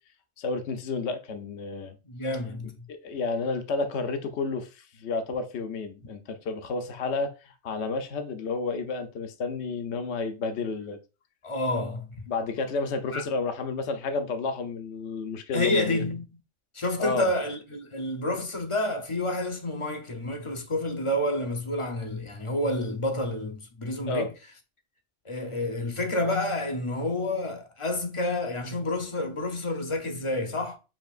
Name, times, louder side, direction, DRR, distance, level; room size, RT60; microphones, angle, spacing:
voice 1, 0.4-1.9 2.9-11.0 12.3-16.0 17.0-17.3 24.1-24.3, left 4 dB, 75° left, 0.9 m, -31 dB
voice 2, 2.0-2.9 11.4-12.3 13.1-13.2 15.5-16.3 16.7-24.3 25.3-30.8, left 1 dB, 30° left, 0.7 m, -29 dB
7.3 x 2.9 x 2.4 m
omnidirectional pair, 1.2 m